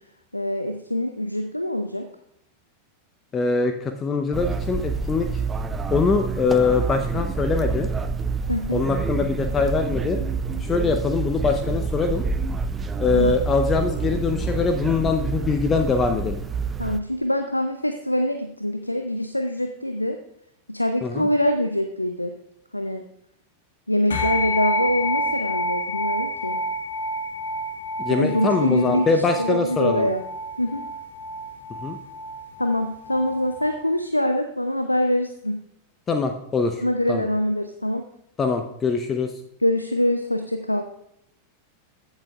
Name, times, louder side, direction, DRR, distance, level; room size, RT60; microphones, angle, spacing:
voice 1, 0.3-2.1 8.5-8.8 13.1-13.3 16.8-20.2 20.7-22.3 22.7-23.0 23.9-26.6 28.1-29.1 29.4-30.2 30.6-30.8 32.6-35.6 36.8-38.0 39.6-40.8, left 1 dB, 85° left, 7 dB, 0.6 m, -24 dB
voice 2, 3.3-5.4 5.9-7.9 8.7-10.2 10.6-12.2 13.0-16.4 21.0-21.3 28.0-30.1 31.8-32.0 36.1-36.8 37.1-37.2 38.4-39.3, left 4 dB, 20° left, 6 dB, 0.7 m, -23 dB
sound 1, 4.3-17.0, right 5 dB, 15° right, 0.6 m, -27 dB
sound 2, 24.1-33.8, equal, 65° left, 1.6 m, -29 dB
14.5 x 7.3 x 2.4 m, 0.78 s
figure-of-eight pair, 90°, 0 cm